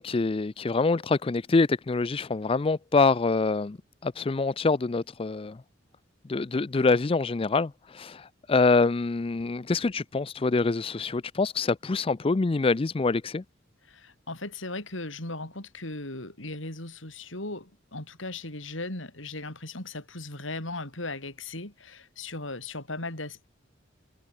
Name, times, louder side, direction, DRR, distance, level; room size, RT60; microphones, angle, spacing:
voice 1, 0.0-3.8 4.0-5.6 6.3-13.4, left 3 dB, 30° left, 0.4 m, -25 dB
voice 2, 13.9-23.5, left 2 dB, 80° left, 6.7 m, -37 dB
head